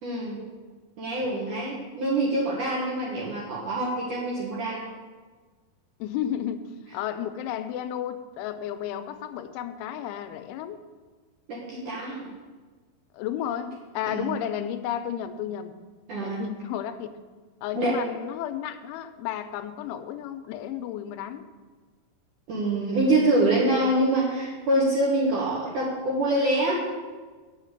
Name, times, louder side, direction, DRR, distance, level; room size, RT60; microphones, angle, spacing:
voice 1, 0.0-0.4 1.0-4.9 11.5-12.3 14.0-14.4 16.1-16.4 17.7-18.0 22.5-26.8, right 1 dB, 60° right, -5 dB, 2.3 m, -25 dB
voice 2, 1.2-1.7 6.0-10.8 13.1-15.7 16.2-17.1 17.6-21.5, left 10 dB, 85° left, 10 dB, 3.0 m, -33 dB
8.2 x 7.3 x 7.8 m, 1.4 s
omnidirectional pair, 5.5 m